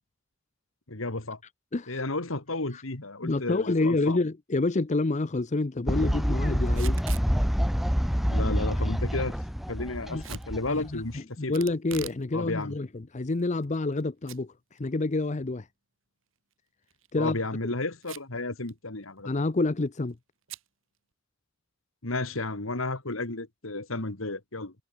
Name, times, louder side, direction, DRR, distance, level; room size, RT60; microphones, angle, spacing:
voice 1, 0.9-1.4 1.9-4.2 8.2-9.4 9.7-11.6 12.3-12.8 17.2-19.3 22.0-24.7, left 2 dB, 80° left, 2.5 m, -32 dB
voice 2, 1.7-2.0 2.7-2.8 3.2-7.0 10.1-10.2 10.7-14.5 14.8-15.7 17.1-17.4 19.3-20.2, left 2 dB, 35° left, 0.7 m, -28 dB
Fowl, 5.9-11.1, equal, ahead, 0.7 m, -27 dB
Packing tape duct tape / Tearing, 6.7-7.3 10.2-10.5 11.5-12.2 12.6-12.7 13.4-14.0 14.3-14.4 14.8-14.9 16.8-17.1 18.0-18.4 18.7-18.8 19.0-19.4 20.5-20.7, right 8 dB, 70° right, 4.1 m, -42 dB
head